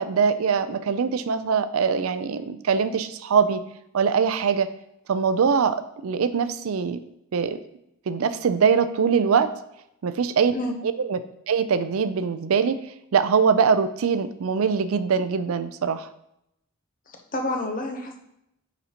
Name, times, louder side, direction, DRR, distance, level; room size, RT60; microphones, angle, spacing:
voice 1, 0.0-3.6 3.9-4.7 5.1-7.0 7.3-7.6 8.1-9.5 10.0-10.5 10.8-11.2 11.5-16.1, right 6 dB, 80° right, 12 dB, 0.4 m, -22 dB
voice 2, 17.1-18.2, left 2 dB, 40° left, 3 dB, 0.8 m, -29 dB
9.1 x 4.1 x 2.9 m, 0.80 s
head